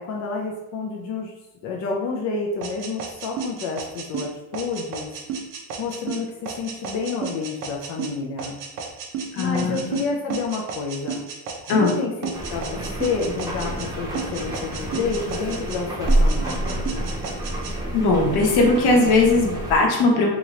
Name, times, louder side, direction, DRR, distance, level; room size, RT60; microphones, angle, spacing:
voice 1, 0.0-1.3 1.6-5.1 5.8-6.3 6.6-8.6 9.4-11.2 11.7-16.9, left 4 dB, 45° left, 0 dB, 0.4 m, -29 dB
sound 1, 2.6-12.0 12.2-13.9 14.1-15.8 16.1-17.7, right 6 dB, 50° right, 0.6 m, -33 dB
voice 2, 9.3-10.0 11.7-11.9 17.9-20.4, left 3 dB, 65° left, 0 dB, 0.9 m, -19 dB
sound 2, 12.3-19.8, right 1 dB, 10° right, 0.7 m, -27 dB
2.9 x 2.4 x 3.1 m, 0.98 s
cardioid pair, 140°, 41 cm